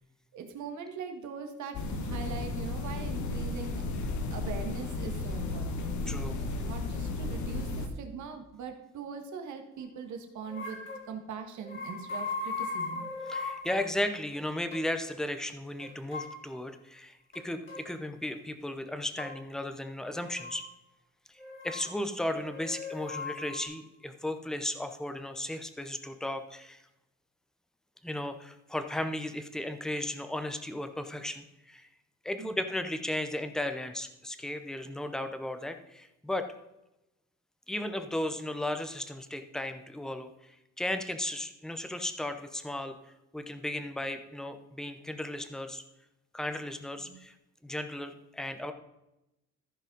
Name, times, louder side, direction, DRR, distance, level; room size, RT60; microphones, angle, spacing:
voice 1, 0.3-3.8 4.3-5.9 6.6-10.8 11.1-13.1 32.4-32.6 47.0-47.2, right 6 dB, 75° right, 6 dB, 1.6 m, -41 dB
sound 1, 1.7-7.9, left 3 dB, 70° left, 1.3 m, -34 dB
voice 2, 6.1-6.4 13.3-20.6 21.6-26.8 28.0-31.9 32.2-36.5 37.7-43.0 43.3-45.8 46.3-47.3 47.6-48.7, left 1 dB, ahead, 8 dB, 0.7 m, -35 dB
sound 2, 10.5-11.1 11.6-13.9 14.3-14.4 14.7-14.9 15.8-16.4 17.3-17.9 19.2-19.3 20.2-20.6 21.4-21.9 22.3-23.6, left 4 dB, 40° left, 3.0 m, -38 dB
14.0 x 5.1 x 5.3 m, 0.92 s
cardioid pair, 145°, 30 cm